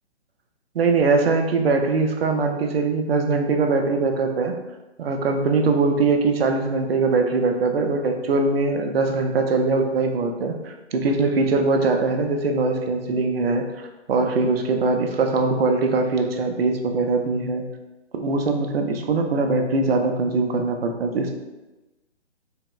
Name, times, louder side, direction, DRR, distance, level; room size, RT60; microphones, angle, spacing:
voice 1, 0.7-4.5 5.0-13.7 14.1-17.6 18.1-21.3, right 3 dB, 60° right, 4 dB, 0.5 m, -22 dB
3.4 x 2.0 x 2.2 m, 1.1 s
hypercardioid pair, 145°, 35 cm